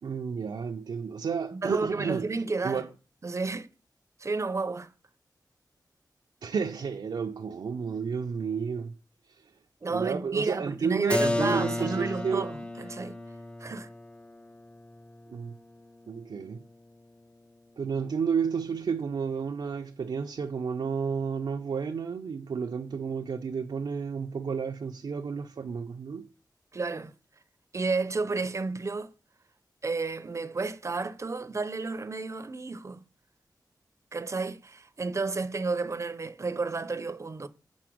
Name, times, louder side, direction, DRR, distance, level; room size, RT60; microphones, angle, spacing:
voice 1, 0.0-2.9 6.4-8.9 9.3-9.5 9.9-12.5 15.3-15.5 16.1-16.6 17.8-26.3, right 6 dB, 85° right, 0.5 m, -31 dB
voice 2, 1.5-2.8 3.2-3.7 4.2-4.9 9.8-13.1 13.6-13.9 26.7-27.1 27.7-29.1 29.8-33.0 34.1-37.5, right 3 dB, 40° right, 0.6 m, -32 dB
Keyboard (musical), 11.1-16.7, left 2 dB, 15° left, 0.4 m, -34 dB
6.0 x 4.2 x 6.1 m
wide cardioid pair, 75°, 7 cm